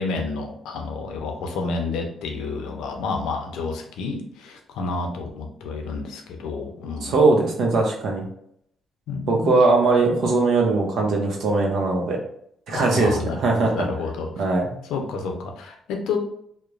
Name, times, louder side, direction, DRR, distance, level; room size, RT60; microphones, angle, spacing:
voice 1, 0.0-7.2 9.1-9.4 12.7-14.4 14.9-16.2, left 4 dB, 90° left, 3 dB, 0.5 m, -30 dB
voice 2, 7.0-8.3 9.3-12.2 12.7-13.9 14.4-14.8, right 3 dB, 70° right, 1 dB, 0.7 m, -20 dB
3.0 x 2.1 x 2.4 m, 0.70 s
cardioid pair, 90°, 0 cm